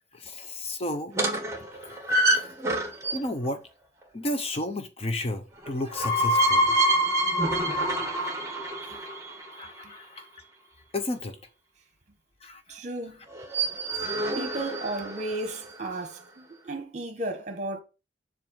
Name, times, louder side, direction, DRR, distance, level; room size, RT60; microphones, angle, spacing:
voice 1, 0.1-1.2 1.7-2.5 3.1-3.6 4.1-6.7 8.9-9.1 9.5-10.3 10.9-11.4 12.4-12.8, left 1 dB, 35° left, 0.7 m, -33 dB
sound 1, 1.1-3.5 5.7-9.7 13.3-15.6, right 1 dB, 15° right, 1.2 m, -26 dB
voice 2, 12.7-13.2 14.2-17.8, right 2 dB, 40° right, 1.1 m, -34 dB
7.3 x 2.5 x 5.7 m
head